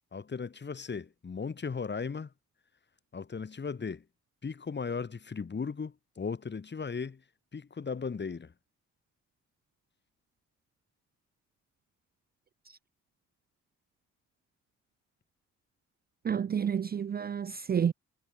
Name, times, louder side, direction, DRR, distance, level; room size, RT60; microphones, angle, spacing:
voice 1, 0.1-2.3 3.1-4.0 4.4-7.2 7.5-8.5, left 5 dB, 35° left, 7.3 m, -36 dB
voice 2, 16.2-17.9, right 8 dB, 30° right, 0.5 m, -30 dB
cardioid pair, 90°, 30 cm